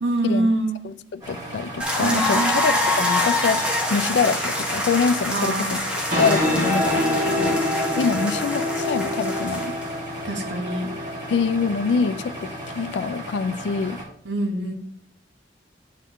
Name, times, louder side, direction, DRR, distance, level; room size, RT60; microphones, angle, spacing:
voice 1, 0.0-0.8 2.0-2.5 5.3-5.8 10.2-10.9 14.2-14.7, right 2 dB, 85° right, 3 dB, 1.2 m, -25 dB
voice 2, 0.8-3.6 3.9-5.7 6.2-9.7 11.3-14.0, left 5 dB, 70° left, 15 dB, 0.3 m, -25 dB
sound 1, 1.2-14.0, right 1 dB, 20° right, 2.2 m, -36 dB
sound 2, 1.8-9.9, left 1 dB, 5° right, 1.0 m, -26 dB
sound 3, 5.8-13.0, left 1 dB, 45° right, 2.1 m, -27 dB
10.0 x 4.0 x 3.0 m, 0.62 s
head